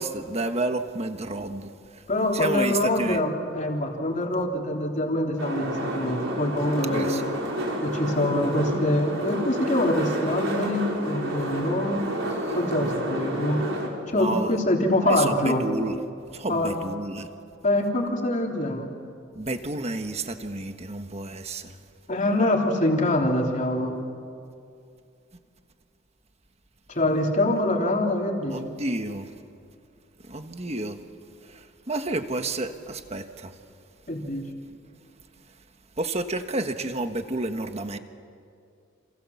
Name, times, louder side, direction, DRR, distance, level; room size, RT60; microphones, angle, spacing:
voice 1, 0.0-1.7 2.3-3.2 6.9-7.2 14.1-14.6 15.0-16.0 16.3-17.3 19.3-21.7 28.5-29.3 30.3-31.0 31.5-33.5 36.0-38.0, right 2 dB, 30° right, 7 dB, 1.4 m, -30 dB
voice 2, 2.1-7.2 7.8-12.1 12.5-13.7 14.1-15.6 16.5-16.8 17.6-18.9 22.1-24.0 26.9-28.6 34.1-34.5, left 1 dB, 35° left, 1 dB, 3.5 m, -25 dB
sound 1, 5.4-13.9, right 1 dB, 75° right, 4.9 m, -30 dB
29.5 x 27.5 x 7.2 m, 2.4 s
head